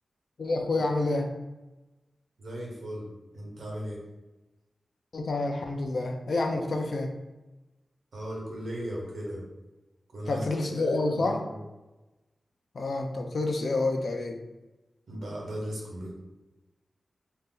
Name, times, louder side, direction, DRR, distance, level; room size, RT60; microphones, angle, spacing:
voice 1, 0.4-1.3 5.1-7.1 10.3-11.4 12.7-14.4, left 2 dB, 55° left, 3 dB, 0.4 m, -28 dB
voice 2, 2.4-3.1 3.3-4.0 8.1-9.4 10.1-10.4 10.8-11.6 15.1-16.1, equal, 80° right, -3 dB, 0.9 m, -37 dB
2.7 x 2.0 x 3.6 m, 1.1 s
wide cardioid pair, 145°, 0 cm